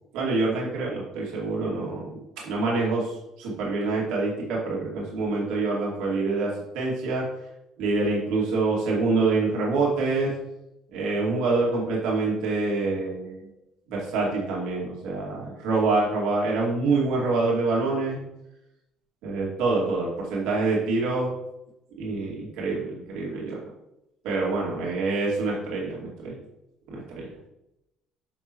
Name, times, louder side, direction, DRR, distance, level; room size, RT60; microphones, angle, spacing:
voice 1, 0.1-2.2 2.4-7.3 7.8-10.3 10.9-13.5 13.9-18.2 19.2-21.3 22.0-23.7 24.2-26.4 26.9-27.2, right 3 dB, 85° right, -4 dB, 2.5 m, -26 dB
9.7 x 5.8 x 3.1 m, 0.88 s
cardioid pair, 150°, 0 cm